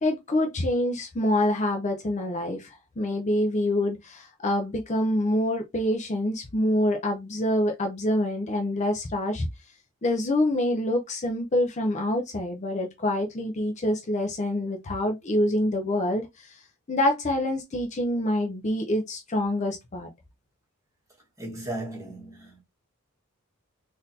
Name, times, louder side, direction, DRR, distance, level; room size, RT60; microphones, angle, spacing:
voice 1, 0.0-9.5 10.0-16.6 16.9-20.1, left 1 dB, 35° left, 0.5 m, -26 dB
voice 2, 21.4-22.6, right 1 dB, 15° right, 1.4 m, -36 dB
3.9 x 2.6 x 2.7 m
head